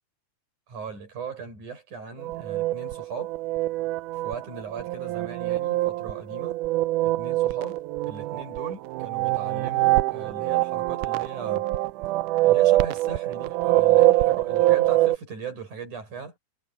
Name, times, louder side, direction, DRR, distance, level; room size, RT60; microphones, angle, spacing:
voice 1, 0.7-3.4 4.1-6.6 7.0-7.8 8.1-11.7 12.4-16.4, right 5 dB, 65° right, 8.0 m, -38 dB
sound 1, 2.2-15.2, right 16 dB, 80° right, 1.9 m, -24 dB
omnidirectional pair, 3.9 m